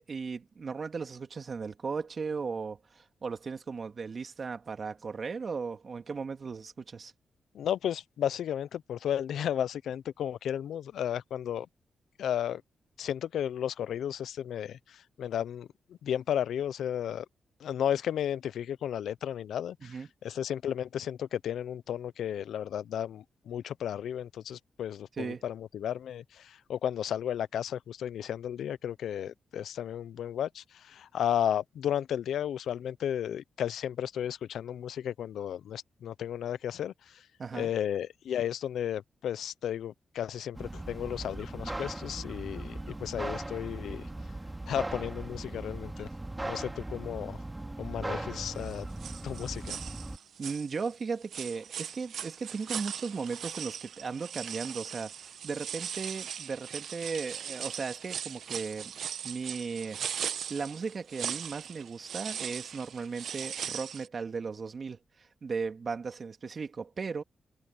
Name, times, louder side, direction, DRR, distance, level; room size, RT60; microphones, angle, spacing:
voice 1, 0.0-7.1 19.8-20.1 25.2-25.4 37.4-37.7 50.4-58.9 59.2-60.2 60.5-67.2, right 5 dB, 50° right, 2.3 m, -36 dB
voice 2, 7.5-11.7 12.2-12.6 13.0-17.3 17.6-37.2 37.5-44.1 44.7-46.1 46.4-47.4 47.8-48.9 49.2-49.8, left 10 dB, 85° left, 0.6 m, -34 dB
sound 1, 40.5-50.2, right 2 dB, 15° right, 2.8 m, -39 dB
sound 2, 48.6-48.7 49.0-51.0 51.3-64.1, right 8 dB, 80° right, 1.5 m, -39 dB
cardioid pair, 60°, 0 cm